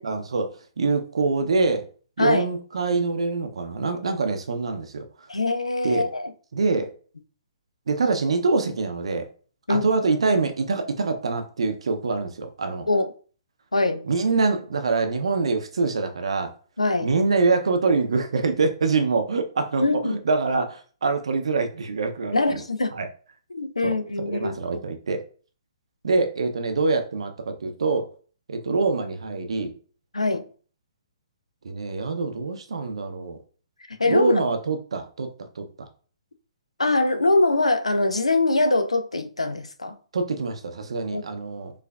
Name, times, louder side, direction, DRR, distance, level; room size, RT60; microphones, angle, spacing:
voice 1, 0.0-1.9 2.2-5.3 5.8-6.1 6.5-6.9 7.9-9.3 9.7-12.9 14.1-16.5 17.0-22.6 22.9-23.1 23.8-23.9 24.3-25.2 26.0-28.1 28.5-29.7 31.6-33.4 34.0-35.9 40.1-41.7, right 4 dB, 65° right, 0.6 m, -25 dB
voice 2, 5.3-6.3 9.7-9.9 12.9-13.1 13.7-14.0 16.8-17.1 19.8-20.2 22.3-22.9 23.5-24.8 30.1-30.5 33.9-34.4 36.8-40.0 41.1-41.2, left 2 dB, 85° left, 0.4 m, -23 dB
4.6 x 2.5 x 2.3 m
figure-of-eight pair, 130°, 3 cm